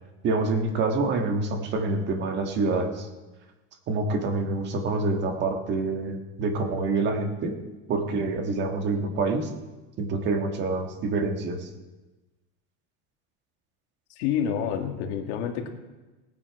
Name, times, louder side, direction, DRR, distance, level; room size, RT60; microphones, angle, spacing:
voice 1, 0.2-3.1 3.9-7.5 7.9-9.5 10.0-11.7, right 3 dB, 35° right, 4 dB, 1.6 m, -26 dB
voice 2, 14.2-15.7, left 8 dB, 65° left, 3 dB, 1.9 m, -28 dB
18.5 x 8.9 x 4.8 m, 1.2 s
cardioid pair, 165°, 32 cm